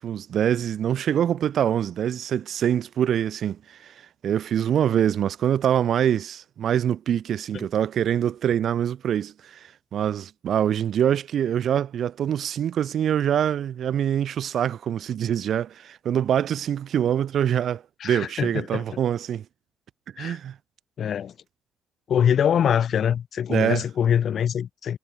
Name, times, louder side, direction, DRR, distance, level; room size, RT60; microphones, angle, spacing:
voice 1, 0.0-3.9 4.2-19.4 20.2-20.6 23.5-23.8, right 9 dB, 65° right, 0.4 m, -24 dB
voice 2, 18.0-19.0 20.2-20.4 21.0-21.3 22.1-25.0, left 8 dB, 60° left, 0.5 m, -24 dB
cardioid pair, 90°, 0 cm